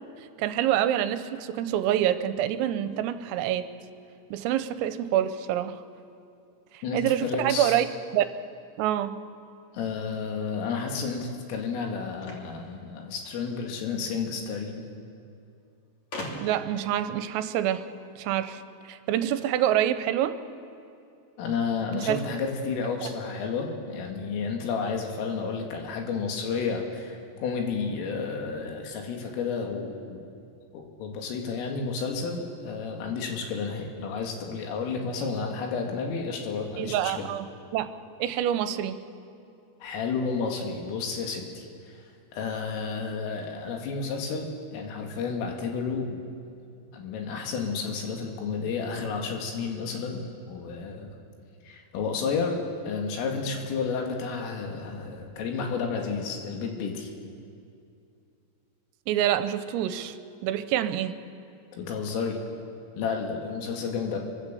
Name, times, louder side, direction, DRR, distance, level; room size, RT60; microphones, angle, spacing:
voice 1, 0.4-3.7 4.3-5.8 6.7-7.9 8.1-8.3 8.8-9.2 16.4-17.8 18.2-18.6 18.9-20.4 21.9-22.2 23.0-23.1 36.8-37.9 38.2-39.0 59.1-60.2 60.4-61.1, right 11 dB, 85° right, 11 dB, 3.4 m, -26 dB
voice 2, 6.8-7.8 9.7-14.8 21.4-30.2 30.7-37.3 39.8-41.7 42.3-46.2 46.9-51.1 51.6-52.6 52.9-57.1 61.7-62.4 63.0-64.2, left 5 dB, 75° left, 2 dB, 4.7 m, -31 dB
sound 1, 12.2-13.6 14.7-14.8 15.0-15.1 16.1-16.8, left 1 dB, 40° left, 3.3 m, -39 dB
26.5 x 24.0 x 6.9 m, 2.5 s
omnidirectional pair, 6.0 m